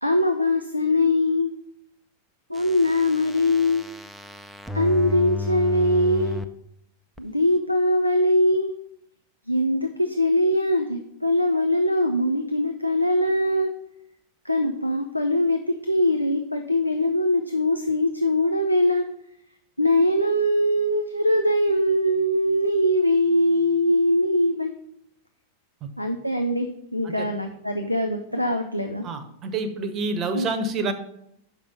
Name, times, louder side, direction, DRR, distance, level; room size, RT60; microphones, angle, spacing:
voice 1, 0.0-1.5 2.5-3.8 4.7-6.4 7.2-8.7 9.5-13.7 14.4-19.1 19.8-24.7 26.0-26.7 26.9-29.0 30.3-30.5, left 1 dB, 90° left, 4 dB, 0.5 m, -22 dB
sound 1, 2.5-6.5 7.2-7.3, left 3 dB, 5° right, 0.5 m, -32 dB
voice 2, 29.0-30.9, right 3 dB, 30° right, 9 dB, 0.9 m, -28 dB
6.5 x 5.2 x 5.6 m, 0.74 s
figure-of-eight pair, 90°, 0 cm